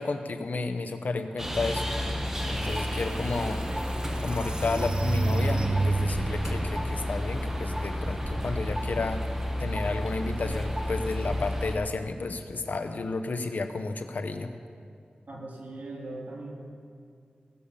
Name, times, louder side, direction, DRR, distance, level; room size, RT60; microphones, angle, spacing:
voice 1, 0.0-2.1 2.5-3.7 4.2-9.3 9.6-14.5, left 3 dB, 75° left, 8 dB, 0.8 m, -32 dB
sound 1, 1.4-11.8, equal, 15° right, 1.4 m, -31 dB
sound 2, 2.6-2.7 3.2-6.4, right 2 dB, 35° right, 0.8 m, -29 dB
voice 2, 15.3-16.5, right 2 dB, 70° right, -2 dB, 2.5 m, -39 dB
17.0 x 7.1 x 6.7 m, 2.3 s
wide cardioid pair, 80°, 3 cm